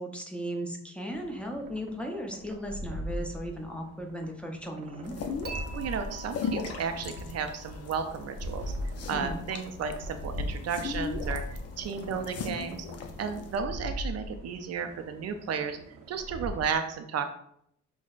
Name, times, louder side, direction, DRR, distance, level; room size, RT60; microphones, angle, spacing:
voice 1, 0.0-5.1 9.1-9.5, equal, 5° left, 1 dB, 0.6 m, -36 dB
sound 1, 1.1-16.6, equal, 90° right, 0.7 m, -41 dB
sound 2, 5.0-13.6, left 4 dB, 55° left, 0.5 m, -37 dB
Dishes pots and pans / Chink clink, 5.4-8.6, right 4 dB, 35° right, 0.7 m, -45 dB
voice 2, 5.7-8.7 9.1-12.8 13.2-17.3, right 6 dB, 55° right, 7 dB, 0.4 m, -33 dB
5.9 x 2.1 x 2.4 m, 0.70 s
cardioid pair, 90°, 30 cm